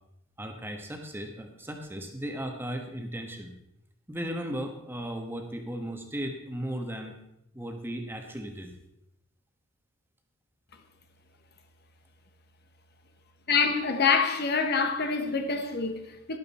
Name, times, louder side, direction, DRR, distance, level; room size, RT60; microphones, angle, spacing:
voice 1, 0.4-3.5 4.1-7.2 7.5-8.7, equal, 10° right, 1.3 m, -36 dB
voice 2, 13.5-16.4, left 5 dB, 45° left, 1.2 m, -26 dB
12.5 x 11.5 x 4.3 m
head